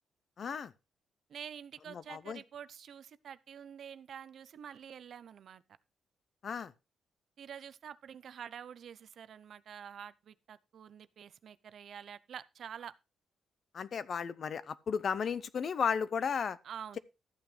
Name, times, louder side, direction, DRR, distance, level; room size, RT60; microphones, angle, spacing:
voice 1, 0.4-0.7 1.9-2.4 6.4-6.7 13.7-16.6, left 6 dB, 45° left, 0.6 m, -34 dB
voice 2, 1.3-5.6 7.4-12.9 16.6-17.0, right 8 dB, 55° right, 0.6 m, -47 dB
13.0 x 8.8 x 3.3 m
cardioid pair, 135°, 0 cm